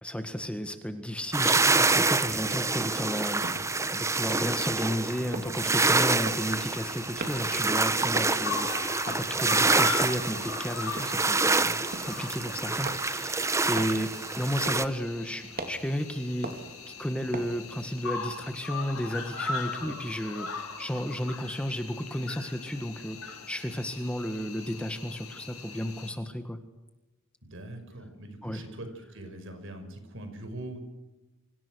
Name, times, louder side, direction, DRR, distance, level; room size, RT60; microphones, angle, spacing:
voice 1, 0.0-3.6 3.9-14.1 14.4-16.5 17.0-26.6 28.4-28.6, equal, 5° left, 7 dB, 1.7 m, -33 dB
sound 1, 1.3-14.9, right 3 dB, 15° right, 0.9 m, -27 dB
sound 2, 3.4-18.1, right 2 dB, 45° right, 3.6 m, -44 dB
Cricket, 6.2-26.1, left 4 dB, 80° left, 5.6 m, -39 dB
voice 2, 27.4-30.8, right 1 dB, 60° right, 7 dB, 5.5 m, -42 dB
28.5 x 25.0 x 6.4 m, 1.1 s
head